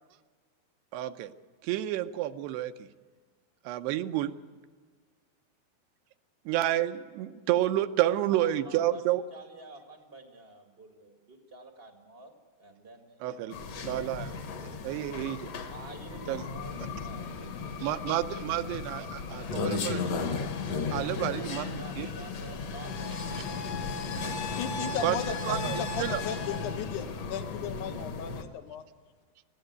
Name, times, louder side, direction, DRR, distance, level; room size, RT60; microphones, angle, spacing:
voice 1, 0.9-1.3 1.6-2.9 3.6-4.3 6.5-9.2 13.2-13.5 13.8-14.3 14.8-15.5 16.3-16.4 17.8-20.2 20.9-22.1 25.0-26.2, right 13 dB, 85° right, 9 dB, 2.8 m, -30 dB
voice 2, 8.0-12.3 12.6-13.4 13.7-14.8 15.7-17.8 18.3-18.8 19.4-19.7 20.9-23.2 23.4-24.1, right 2 dB, 45° right, 3 dB, 0.7 m, -49 dB
sound 1, 13.5-28.4, left 4 dB, 55° left, 1.8 m, -35 dB
voice 3, 24.6-28.8, left 8 dB, 80° left, 8 dB, 1.8 m, -36 dB
21.0 x 15.0 x 8.2 m, 1.5 s
omnidirectional pair, 4.7 m